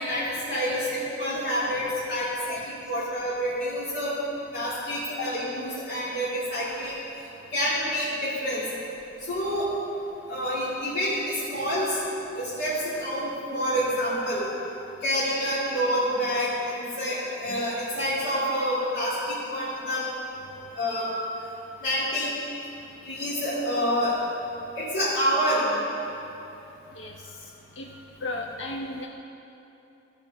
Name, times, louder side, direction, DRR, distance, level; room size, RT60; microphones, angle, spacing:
voice 1, 0.0-2.6 2.8-4.2 4.5-7.0 7.5-8.6 9.3-9.7 10.3-12.0 12.3-14.5 15.0-20.0 20.8-21.1 21.8-22.3 23.0-24.1 24.8-25.7, equal, 70° left, -11 dB, 2.3 m, -27 dB
voice 2, 26.9-27.4 27.7-28.0 28.2-29.1, left 2 dB, 85° left, 0 dB, 0.7 m, -35 dB
14.5 x 5.1 x 5.3 m, 2.9 s
head